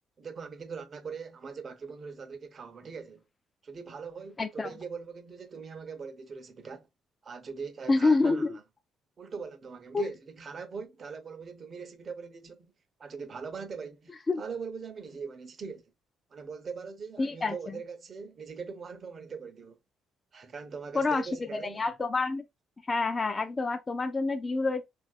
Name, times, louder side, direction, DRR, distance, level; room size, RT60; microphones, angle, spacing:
voice 1, 0.2-3.2 3.6-6.9 7.2-8.5 9.2-12.7 13.0-15.8 16.3-19.8 20.3-21.8, right 5 dB, 45° right, 0.6 m, -41 dB
voice 2, 4.4-4.7 7.9-8.6 9.9-10.1 14.3-14.4 17.2-17.8 20.9-22.4 22.8-24.8, left 3 dB, 30° left, 0.4 m, -28 dB
3.2 x 2.4 x 2.4 m
cardioid pair, 90°, 0 cm